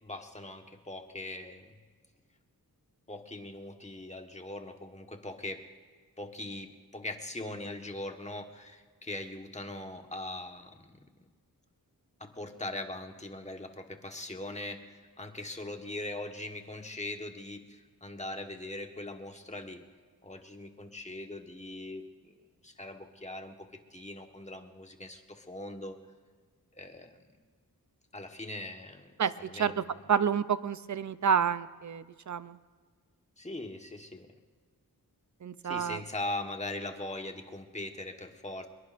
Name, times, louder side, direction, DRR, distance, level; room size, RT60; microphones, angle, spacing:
voice 1, 0.0-1.7 3.1-5.6 6.2-11.0 12.2-19.8 20.2-22.3 22.6-26.0 26.7-27.2 28.1-29.9 33.4-34.3 35.6-38.7, left 2 dB, 20° left, 4 dB, 1.4 m, -41 dB
voice 2, 30.1-32.6 35.4-36.0, right 7 dB, 50° right, 14 dB, 0.6 m, -29 dB
24.5 x 21.5 x 2.6 m, 1.5 s
wide cardioid pair, 110°, 37 cm